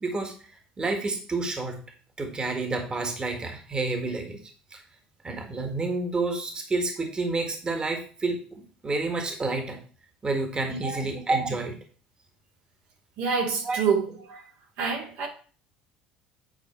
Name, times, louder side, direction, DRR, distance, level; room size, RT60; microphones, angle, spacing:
voice 1, 0.0-1.8 2.2-4.4 4.7-4.8 5.2-9.8 10.2-11.8 13.6-13.8, right 3 dB, 25° right, 1.6 m, -29 dB
voice 2, 10.7-11.1 13.2-14.5 14.8-15.3, right 5 dB, 75° right, 2.5 m, -27 dB
9.1 x 4.8 x 4.4 m
supercardioid pair, 85°, 3 cm